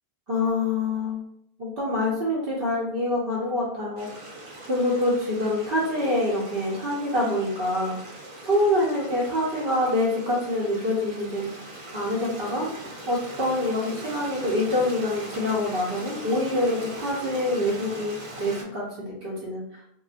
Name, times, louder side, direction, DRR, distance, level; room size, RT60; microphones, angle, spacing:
voice 1, 0.3-1.2 1.6-4.3 4.7-8.0 8.4-12.7 13.1-19.6, left 1 dB, 60° right, -6 dB, 0.9 m, -26 dB
Stream, 4.0-18.6, right 1 dB, 40° right, 0.5 m, -40 dB
3.7 x 2.0 x 2.4 m, 0.74 s
omnidirectional pair, 1.1 m